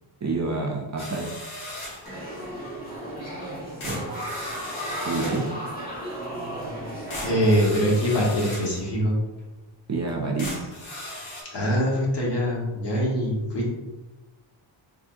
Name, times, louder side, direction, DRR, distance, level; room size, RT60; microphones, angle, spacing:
voice 1, 0.2-1.4 3.8-4.1 5.1-5.5 9.9-10.7, right 3 dB, 35° right, -1 dB, 0.5 m, -28 dB
sound 1, 1.0-2.1 3.2-3.3 3.8-5.5 6.6-6.7 7.1-8.8 9.4-9.5 10.1-10.2 10.4-11.4, left 1 dB, 80° left, 1.3 m, -37 dB
sound 2, 2.0-7.7, equal, 20° left, 1.2 m, -34 dB
voice 2, 7.2-9.2 11.5-13.7, equal, 55° left, -4 dB, 1.4 m, -23 dB
3.7 x 3.5 x 2.6 m, 1.1 s
wide cardioid pair, 160°, 48 cm